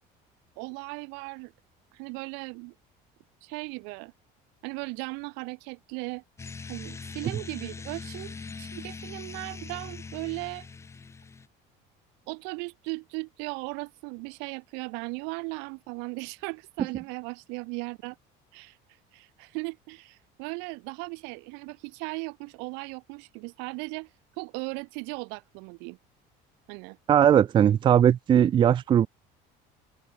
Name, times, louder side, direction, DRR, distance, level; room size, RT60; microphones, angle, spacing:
voice 1, 0.6-1.5 1.9-2.7 3.4-4.1 4.6-6.2 6.7-10.7 12.3-18.2 18.5-18.8 19.1-24.1 24.4-26.0 26.7-27.0, right 33 dB, 85° right, 2.4 m, -37 dB
sound 1, 6.4-11.5, left 4 dB, 15° left, 1.1 m, -41 dB
voice 2, 27.1-29.1, right 9 dB, 25° right, 0.5 m, -19 dB
cardioid pair, 155°, 18 cm